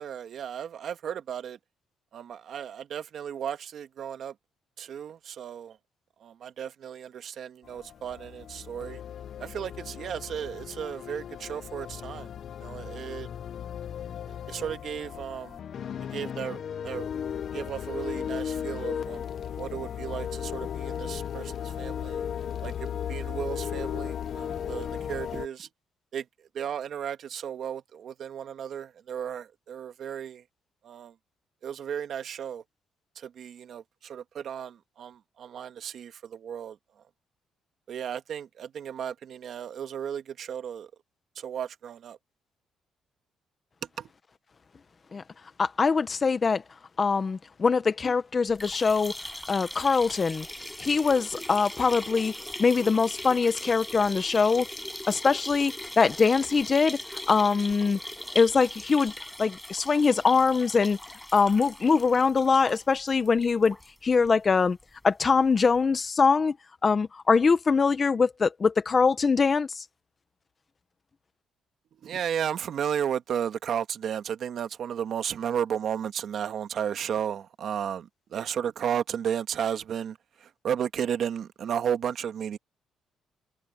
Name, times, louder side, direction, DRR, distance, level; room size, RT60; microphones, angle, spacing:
voice 1, 0.0-1.6 2.1-4.3 4.8-5.7 6.2-9.0 9.4-12.3 12.6-13.3 14.5-15.6 16.1-17.1 17.5-19.2 19.6-21.5 21.8-22.2 22.6-25.7 26.1-26.2 26.6-30.4 30.8-31.1 31.6-32.6 33.2-36.8 37.9-40.9 41.4-42.2 44.0-44.1 72.0-80.2 80.6-82.6, right 8 dB, 65° right, 1.7 m, -34 dB
sound 1, 7.6-25.5, left 8 dB, 60° left, 0.9 m, -36 dB
voice 2, 45.6-46.6 47.0-49.1 49.5-50.4 50.8-52.3 52.6-54.7 55.1-57.0 57.3-58.0 58.3-59.1 59.4-61.0 61.3-63.7 64.0-64.8 65.0-66.5 66.8-69.8, left 5 dB, 35° left, 1.1 m, -23 dB
sound 2, 48.5-63.9 64.3-64.4 64.7-64.8 65.8-65.9, left 1 dB, 5° left, 5.4 m, -40 dB
cardioid pair, 90°, 0 cm